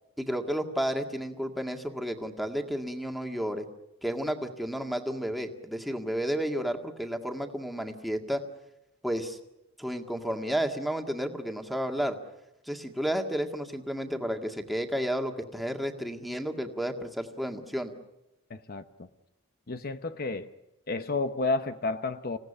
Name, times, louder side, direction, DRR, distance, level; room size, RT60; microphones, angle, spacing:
voice 1, 0.2-3.7 4.0-8.4 9.0-9.4 9.8-12.2 12.7-17.9, equal, ahead, 4 dB, 1.9 m, -32 dB
voice 2, 18.5-19.1 19.7-20.5 20.9-22.4, left 3 dB, 50° left, 10 dB, 0.9 m, -31 dB
27.5 x 17.0 x 9.9 m, 0.92 s
head